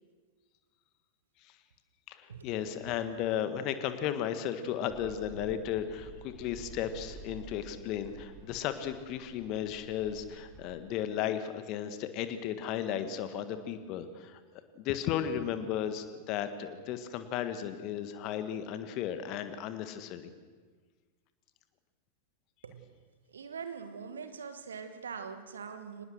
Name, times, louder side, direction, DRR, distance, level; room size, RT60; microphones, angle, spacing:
voice 1, 2.1-14.4 14.7-20.3, left 9 dB, 40° left, 10 dB, 1.7 m, -35 dB
sound 1, 4.9-10.7, right 3 dB, 20° right, 7.3 m, -50 dB
voice 2, 22.6-23.0 23.3-26.0, right 6 dB, 70° right, 8 dB, 1.8 m, -43 dB
25.0 x 19.5 x 6.6 m, 1.5 s
figure-of-eight pair, 90°, 0 cm